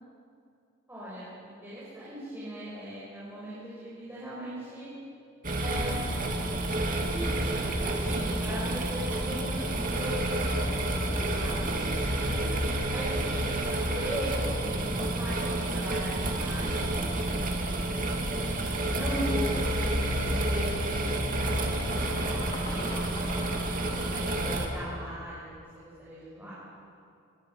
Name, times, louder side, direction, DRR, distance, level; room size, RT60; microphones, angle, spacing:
voice 1, 0.9-4.9 5.6-6.3 7.0-10.7 11.2-12.6 12.9-18.2 18.9-23.7 24.1-26.5, equal, 10° right, -10 dB, 6.1 m, -39 dB
sound 1, 5.4-24.7, right 1 dB, 40° right, 2.5 m, -29 dB
sound 2, 20.9-25.5, left 2 dB, 30° left, 3.7 m, -44 dB
25.0 x 23.0 x 5.9 m, 2.4 s
head